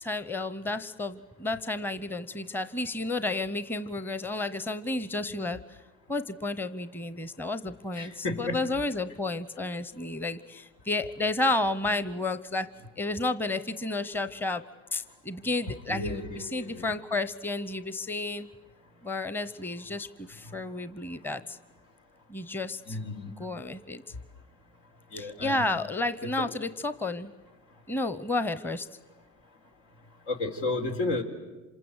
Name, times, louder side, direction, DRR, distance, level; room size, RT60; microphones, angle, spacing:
voice 1, 0.0-5.8 6.1-14.6 14.9-18.5 19.0-21.6 22.3-23.0 23.4-24.0 25.1-27.3 27.9-28.9, left 2 dB, 5° left, 13 dB, 0.9 m, -31 dB
voice 2, 8.0-8.6 15.9-16.9 22.9-23.3 25.1-25.6 26.4-26.5 30.3-31.2, left 2 dB, 75° left, 3 dB, 4.0 m, -32 dB
26.5 x 26.5 x 8.1 m, 1.2 s
hypercardioid pair, 80°, 38 cm